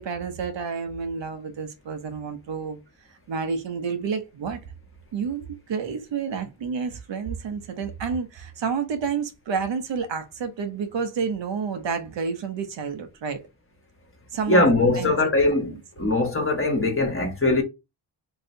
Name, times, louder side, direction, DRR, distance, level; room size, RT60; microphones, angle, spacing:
voice 1, 0.0-2.8 3.1-4.6 5.1-13.4 14.3-15.1 15.7-15.8, right 5 dB, 65° right, 0.8 m, -30 dB
voice 2, 14.5-17.6, left 2 dB, 25° left, 1.3 m, -21 dB
3.1 x 2.8 x 2.6 m
cardioid pair, 65°, 47 cm